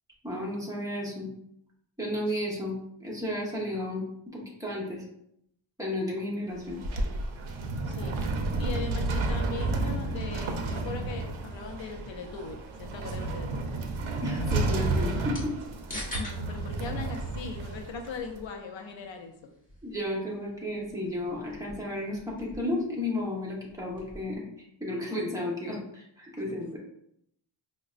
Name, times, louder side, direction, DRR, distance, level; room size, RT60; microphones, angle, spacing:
voice 1, 0.2-1.3 2.0-4.1 4.3-5.0 5.8-6.8 14.2-15.5 19.8-24.4 24.8-26.8, left 1 dB, 5° right, -4 dB, 0.9 m, -33 dB
sound 1, 6.5-18.4, right 2 dB, 75° right, 0.6 m, -31 dB
voice 2, 7.8-8.2 8.6-13.7 15.9-19.5 26.5-26.6, left 4 dB, 70° left, 4 dB, 0.5 m, -39 dB
sound 2, 13.7-24.4, equal, 15° left, 1.0 m, -47 dB
4.8 x 2.2 x 2.4 m, 0.75 s
wide cardioid pair, 115°, 47 cm